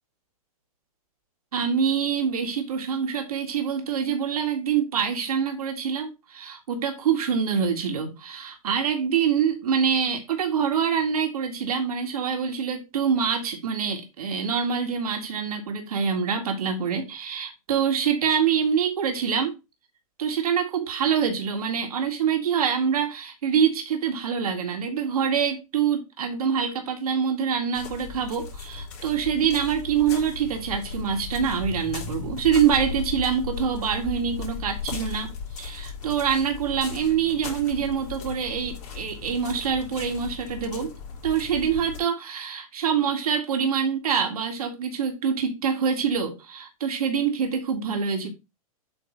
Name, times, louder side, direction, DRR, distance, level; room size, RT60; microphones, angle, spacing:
voice 1, 1.5-19.5 20.2-35.3 35.6-40.9 41.2-48.3, right 7 dB, 80° right, 2.0 m, -25 dB
sound 1, 27.7-42.0, left 6 dB, 50° left, 3.1 m, -36 dB
7.9 x 3.5 x 5.1 m
hypercardioid pair, 130°, 19 cm